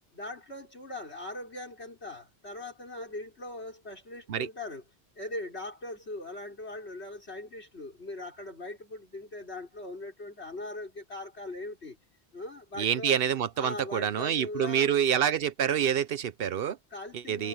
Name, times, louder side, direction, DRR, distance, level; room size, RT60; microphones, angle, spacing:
voice 1, 0.1-4.8 5.2-12.0 12.3-13.2 13.6-15.0 16.9-17.5, left 2 dB, 85° left, 5.4 m, -40 dB
voice 2, 12.8-16.8 17.1-17.5, right 9 dB, 65° right, 0.9 m, -27 dB
omnidirectional pair, 1.1 m